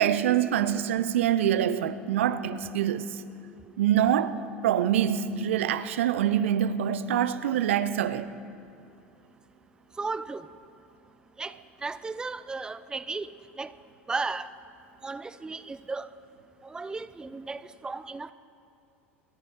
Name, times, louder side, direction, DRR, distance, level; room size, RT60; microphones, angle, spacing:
voice 1, 0.0-3.2 3.8-4.4 4.6-8.3, right 10 dB, 70° right, 0.6 m, -25 dB
voice 2, 10.0-10.5 11.4-11.5 11.8-13.3 13.6-13.7 14.1-14.5 15.0-16.1 16.6-18.3, right 3 dB, 10° right, 0.4 m, -34 dB
27.5 x 10.0 x 4.6 m
figure-of-eight pair, 75°, 7 cm